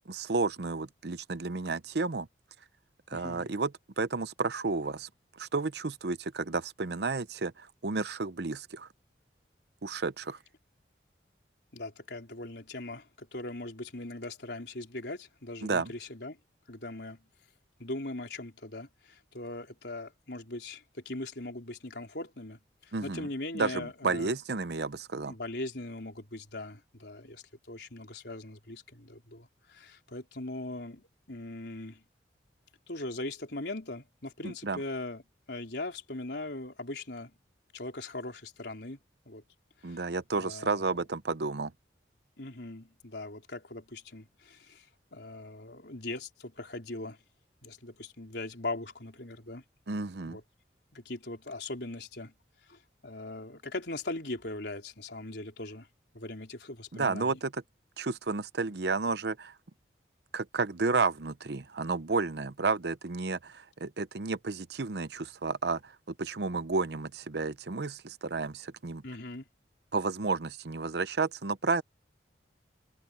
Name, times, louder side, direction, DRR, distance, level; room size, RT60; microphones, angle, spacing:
voice 1, 0.1-2.3 3.1-5.1 5.4-8.9 9.8-10.4 15.6-15.9 22.9-23.3 23.5-25.3 34.4-34.8 39.8-41.7 49.9-50.4 56.9-57.5 58.0-59.5 60.3-65.9 66.2-69.0 69.9-71.8, right 4 dB, 65° right, 0.8 m, -32 dB
voice 2, 3.1-3.5 11.7-16.4 16.7-17.2 17.8-24.3 25.3-32.0 32.9-35.2 35.5-37.3 37.7-39.0 39.3-39.4 39.8-40.0 40.3-40.9 42.4-44.9 45.1-47.2 47.6-49.6 50.3-50.4 50.9-52.3 52.7-55.9 56.1-57.4 69.0-69.5, left 2 dB, 70° left, 4.0 m, -40 dB
head